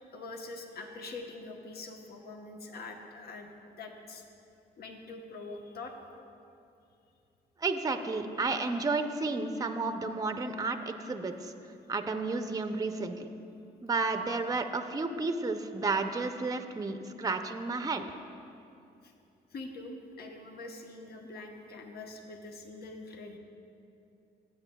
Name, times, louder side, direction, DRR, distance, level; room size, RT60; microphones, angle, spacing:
voice 1, 0.0-3.5 3.8-4.2 4.8-6.0 19.0-19.1 19.5-23.4, left 3 dB, 60° left, 3 dB, 1.0 m, -44 dB
voice 2, 7.6-11.5 11.9-13.3 13.8-18.0, right 3 dB, 20° right, 7 dB, 0.6 m, -32 dB
15.5 x 8.2 x 2.3 m, 2.6 s
supercardioid pair, 70°, 18 cm